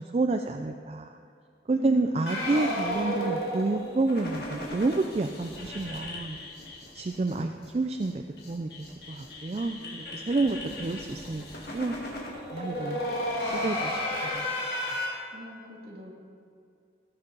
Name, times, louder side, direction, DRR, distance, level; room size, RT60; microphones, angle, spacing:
voice 1, 0.1-1.1 1.7-6.4 6.9-12.0 12.5-13.0 13.5-14.5, right 3 dB, 35° right, 5 dB, 0.4 m, -29 dB
voice 2, 1.7-2.5 10.2-10.9 15.3-16.1, left 2 dB, 55° right, -3 dB, 2.3 m, -42 dB
sound 1, 2.3-7.4 7.6-7.7 8.0-8.1 8.4-15.1, left 1 dB, 60° left, 2.2 m, -34 dB
18.0 x 8.1 x 3.9 m, 2.3 s
head